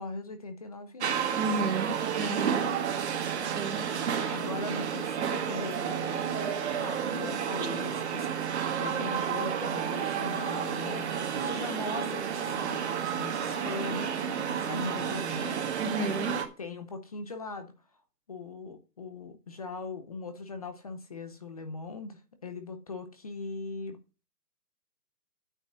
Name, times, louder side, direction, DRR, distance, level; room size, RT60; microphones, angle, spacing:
voice 1, 0.0-1.4 2.5-3.0 4.3-6.3 6.7-15.6 16.6-17.7 18.3-24.0, left 3 dB, 25° left, 8 dB, 0.7 m, -40 dB
sound 1, 1.0-16.5, right 8 dB, 40° right, 1.6 m, -31 dB
voice 2, 1.4-2.7 3.4-3.8 15.8-16.4, right 2 dB, 70° right, 1 dB, 2.5 m, -32 dB
9.0 x 6.2 x 6.1 m, 0.31 s
hypercardioid pair, 155°, 49 cm